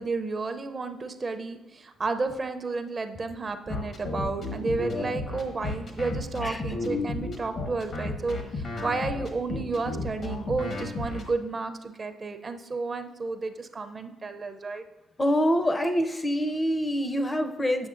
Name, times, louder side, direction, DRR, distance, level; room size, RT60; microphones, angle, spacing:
voice 1, 0.0-14.8, right 3 dB, 35° right, 8 dB, 0.4 m, -32 dB
sound 1, 3.7-11.2, left 3 dB, 60° left, 1.1 m, -32 dB
voice 2, 15.2-17.9, equal, 20° left, 8 dB, 0.5 m, -25 dB
7.8 x 6.1 x 2.5 m, 1.1 s
cardioid pair, 90°, 0 cm